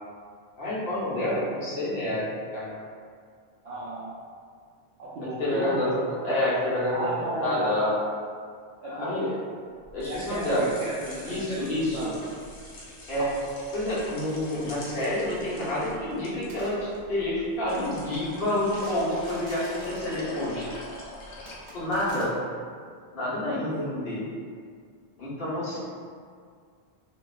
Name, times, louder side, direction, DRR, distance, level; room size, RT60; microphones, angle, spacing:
voice 1, 0.6-2.2 2.5-2.8 3.7-3.8 5.4-5.9 6.2-7.1 7.4-7.9 8.9-9.3 9.9-10.7 11.2-12.1 13.1-13.3 13.7-20.7 21.7-22.3 23.1-24.2 25.2-25.8, left 1 dB, 60° left, -8 dB, 0.9 m, -28 dB
voice 2, 3.6-4.1 5.0-5.9 6.9-8.1 8.8-9.4 10.1-12.1 23.4-24.2, right 1 dB, 85° right, -10 dB, 0.9 m, -34 dB
sound 1, 9.8-22.1, left 2 dB, 90° left, 0.9 m, -43 dB
sound 2, 16.3-16.8 18.7-20.3 21.5-22.3, right 1 dB, 50° right, 0.4 m, -46 dB
2.8 x 2.1 x 2.3 m, 2.1 s
omnidirectional pair, 1.1 m